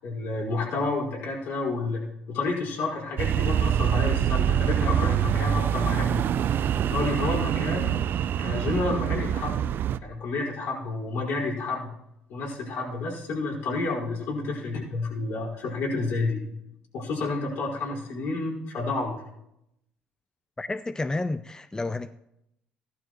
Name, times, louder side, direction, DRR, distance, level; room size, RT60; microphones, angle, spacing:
voice 1, 0.0-2.0 2.3-6.2 6.9-8.0 8.4-9.6 10.0-11.9 12.3-16.4 16.9-19.2, left 3 dB, 70° left, 5.0 m, -30 dB
sound 1, 3.2-10.0, right 10 dB, 55° right, 0.5 m, -25 dB
voice 2, 20.6-22.2, left 2 dB, 15° left, 0.5 m, -30 dB
16.0 x 12.0 x 3.1 m
hypercardioid pair, 60°, 4 cm